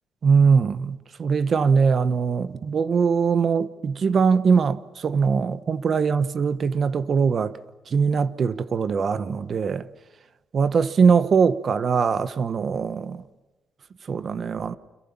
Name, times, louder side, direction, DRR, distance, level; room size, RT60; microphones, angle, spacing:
voice 1, 0.2-7.6 7.9-9.9 10.5-13.2 14.1-14.8, right 5 dB, 50° right, 1.3 m, -21 dB
29.5 x 27.0 x 7.3 m
cardioid pair, 90°, 0 cm